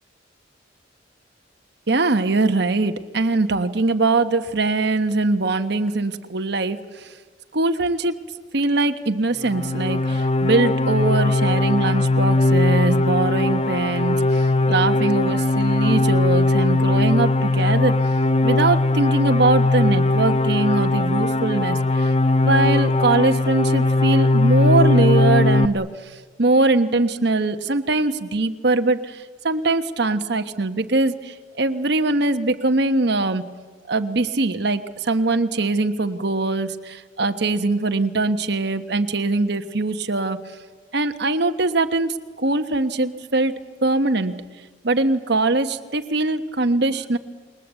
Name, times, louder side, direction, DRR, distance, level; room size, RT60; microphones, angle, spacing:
voice 1, 1.9-7.1 7.5-8.1 8.5-17.9 18.4-22.1 22.4-26.1 26.4-33.4 33.9-40.4 40.9-43.5 43.8-44.3 44.8-47.2, right 2 dB, 60° right, 7 dB, 1.2 m, -22 dB
sound 1, 9.4-25.7, left 2 dB, 35° left, 0.7 m, -19 dB
28.5 x 22.0 x 8.2 m, 1.4 s
head